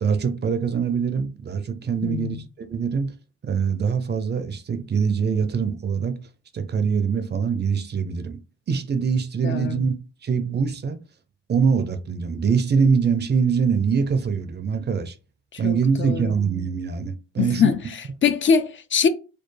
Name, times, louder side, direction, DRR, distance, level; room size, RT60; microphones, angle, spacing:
voice 1, 0.0-3.1 3.4-6.2 6.5-8.4 8.7-10.0 10.2-11.0 11.5-15.1 15.6-17.7, right 6 dB, 35° right, 0.5 m, -23 dB
voice 2, 2.0-2.4 9.4-9.8 15.5-16.3 17.4-19.1, left 6 dB, 40° left, 0.4 m, -23 dB
4.3 x 2.3 x 3.2 m
cardioid pair, 90°, 30 cm